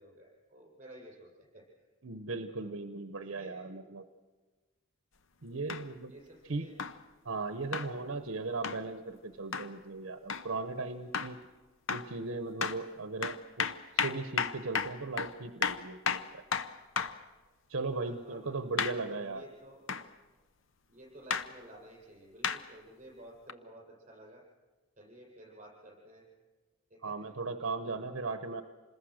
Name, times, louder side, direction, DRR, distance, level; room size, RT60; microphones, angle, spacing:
voice 1, 0.0-1.6 2.6-2.7 3.3-3.6 6.1-6.8 7.6-7.9 18.0-19.8 20.9-24.4 25.0-26.2 26.9-27.1, right 1 dB, 35° right, -2 dB, 7.6 m, -53 dB
voice 2, 2.0-4.1 5.4-6.1 6.5-6.7 7.2-11.4 11.9-16.4 17.7-19.5 27.0-28.6, right 3 dB, 70° right, 9 dB, 0.9 m, -37 dB
sound 1, 5.7-5.9 6.8-7.0 7.7-7.9 8.6-8.8 9.5-9.7 10.3-10.5 11.1-11.4 11.9-12.1 12.6-12.8 13.2-17.2 18.8-19.0 19.9-20.1 21.3-21.5 22.4-22.6 23.5-23.6, left 6 dB, 65° left, 0.8 m, -33 dB
27.0 x 20.5 x 6.5 m, 1.3 s
head